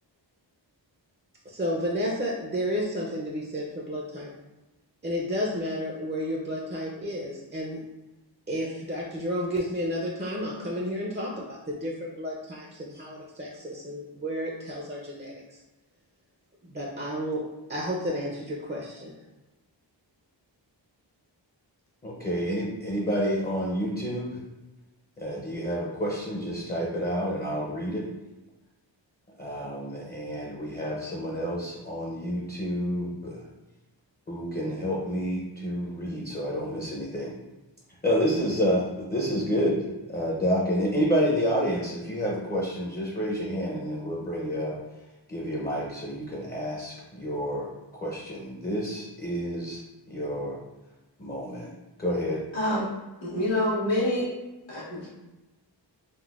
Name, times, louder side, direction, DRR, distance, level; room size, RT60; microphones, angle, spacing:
voice 1, 1.5-4.3 5.0-7.8 8.5-15.4 16.6-19.1, equal, 25° right, -2 dB, 0.5 m, -32 dB
voice 2, 22.0-24.4 25.2-28.1 29.4-33.5 34.3-37.4 38.0-44.8 45.3-50.6 51.2-51.7 52.0-52.4, equal, 20° left, -4 dB, 0.6 m, -29 dB
voice 3, 52.5-52.9 53.2-54.3 54.7-55.1, left 1 dB, 80° left, -6 dB, 1.3 m, -26 dB
3.8 x 2.1 x 2.4 m, 1.1 s
wide cardioid pair, 45°, 45 cm